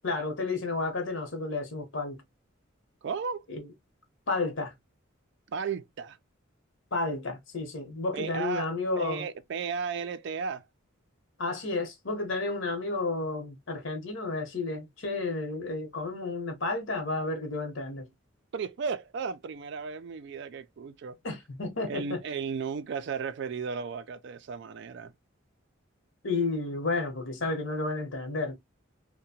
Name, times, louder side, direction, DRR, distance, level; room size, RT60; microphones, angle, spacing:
voice 1, 0.0-2.2 3.5-3.7 4.3-4.7 6.9-9.3 11.4-18.1 21.2-22.2 26.2-28.5, left 3 dB, 65° left, 0.9 m, -31 dB
voice 2, 3.0-3.5 5.5-6.2 8.1-8.7 9.0-10.7 18.5-21.2 21.9-25.1, right 5 dB, 55° right, 0.3 m, -34 dB
2.7 x 2.1 x 2.7 m
head